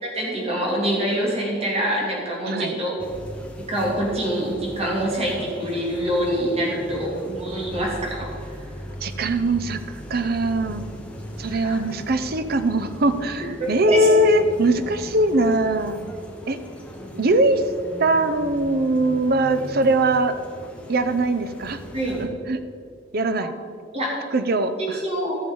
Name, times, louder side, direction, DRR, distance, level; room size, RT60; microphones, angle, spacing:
voice 1, 0.0-2.9 3.7-8.3 11.5-11.7 13.6-14.1 21.9-22.2 23.4-23.5 23.9-24.2 24.8-25.4, right 1 dB, 35° right, -3 dB, 3.1 m, -25 dB
voice 2, 2.5-2.8 9.0-10.8 11.4-16.0 16.5-16.6 17.1-17.6 18.0-20.3 20.9-21.8 22.2-22.6 23.1-23.5 24.3-25.0, right 1 dB, 55° right, 10 dB, 0.7 m, -21 dB
sound 1, 3.0-22.3, equal, 5° left, 1.3 m, -38 dB
15.0 x 7.0 x 5.5 m, 2.4 s
head